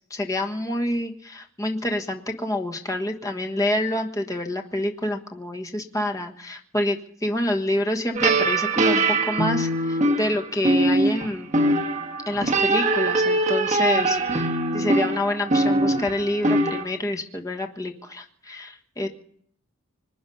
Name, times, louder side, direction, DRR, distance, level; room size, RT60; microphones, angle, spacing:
voice 1, 0.1-11.5 12.2-19.1, left 1 dB, 15° left, 3 dB, 1.5 m, -27 dB
sound 1, 8.1-16.8, right 2 dB, 35° right, 1.5 m, -22 dB
26.0 x 10.0 x 5.5 m, 0.63 s
head